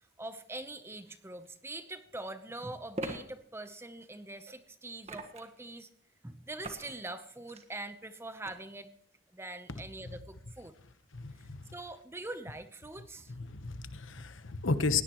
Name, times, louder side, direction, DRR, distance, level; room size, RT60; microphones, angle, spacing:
voice 1, 0.2-5.9 6.2-8.9 9.3-10.7 11.7-13.3, right 2 dB, 10° right, 10 dB, 0.8 m, -43 dB
sound 1, 1.4-1.5 2.9-3.2 5.0-5.6 6.6-6.9 7.3-7.6 8.4-8.5, right 1 dB, 30° right, 1.5 m, -40 dB
voice 2, 11.1-11.6 13.3-15.0, left 4 dB, 75° left, 11 dB, 1.1 m, -33 dB
20.0 x 17.5 x 3.1 m, 0.67 s
head